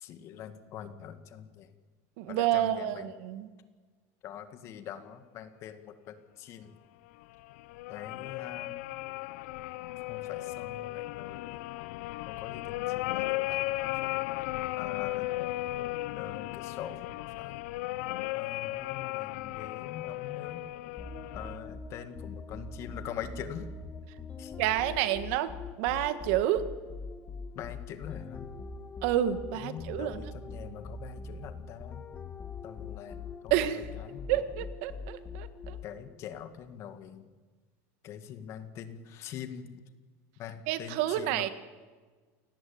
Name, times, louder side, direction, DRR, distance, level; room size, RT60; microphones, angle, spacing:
voice 1, 0.0-1.7 2.3-3.1 4.2-6.7 7.9-8.7 10.1-11.4 12.3-14.2 14.8-15.3 16.1-17.6 18.3-20.6 21.3-23.7 24.4-24.5 27.5-28.5 29.5-32.0 32.6-33.2 33.4-33.5 34.0-34.3 35.8-37.3 38.0-39.7 40.4-41.5, left 9 dB, 40° left, 9 dB, 2.1 m, -43 dB
voice 2, 2.2-3.5 24.6-26.7 29.0-30.3 33.5-33.9 34.3-35.8 40.7-41.5, right 12 dB, 65° right, 11 dB, 1.8 m, -29 dB
sound 1, 7.2-21.6, left 18 dB, 75° left, 0.7 m, -35 dB
sound 2, 21.0-36.1, left 4 dB, 20° left, 1.7 m, -43 dB
28.5 x 19.0 x 8.9 m, 1.4 s
cardioid pair, 165°, 8 cm